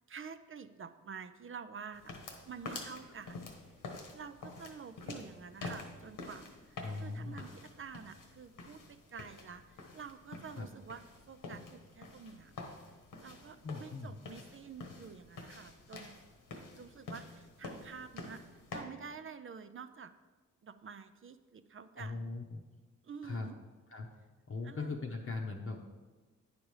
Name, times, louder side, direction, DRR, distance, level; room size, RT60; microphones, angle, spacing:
voice 1, 0.0-2.1 2.5-3.5 4.1-12.5 13.2-16.1 16.8-20.1 20.6-22.3 23.0-23.6 24.6-24.9, right 6 dB, 40° right, 11 dB, 0.4 m, -49 dB
sound 1, 1.9-18.8, left 3 dB, 90° left, 1.3 m, -48 dB
voice 2, 6.8-7.4 10.6-10.7 13.6-14.1 22.0-22.6 23.2-23.5 23.9-24.1 24.5-25.8, left 3 dB, 40° left, 0 dB, 0.8 m, -39 dB
9.6 x 5.1 x 4.8 m, 1.3 s
cardioid pair, 75°, 32 cm